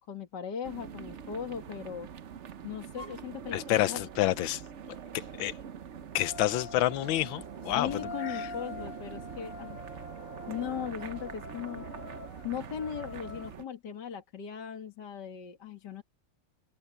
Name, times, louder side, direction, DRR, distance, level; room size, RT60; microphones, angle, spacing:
voice 1, 0.1-2.1 2.6-4.0 7.8-9.8 10.5-11.9 12.4-16.0, left 8 dB, 55° left, 2.6 m, -38 dB
sound 1, 0.6-13.6, right 8 dB, 75° right, 0.6 m, -44 dB
sound 2, 3.0-3.2 6.1-13.6, left 3 dB, 90° left, 2.6 m, -45 dB
voice 2, 3.5-4.6 5.4-5.5 6.1-7.9 8.2-8.5, left 15 dB, 75° left, 1.4 m, -28 dB
omnidirectional pair, 2.3 m